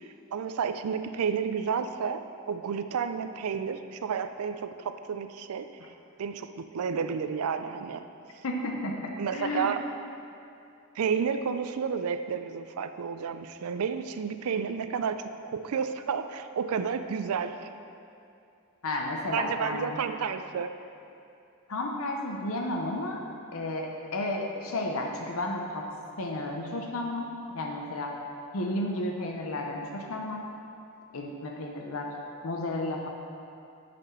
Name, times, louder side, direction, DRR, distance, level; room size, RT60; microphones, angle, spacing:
voice 1, 0.0-5.7 6.2-8.0 9.2-9.8 11.0-17.7 19.3-20.7, right 6 dB, 85° right, 10 dB, 0.4 m, -31 dB
voice 2, 8.4-9.7 18.8-20.0 21.7-23.2 23.5-25.9 26.2-28.1 28.5-30.5 31.1-33.1, left 1 dB, 70° left, 1 dB, 0.7 m, -32 dB
8.1 x 4.3 x 5.6 m, 2.6 s
head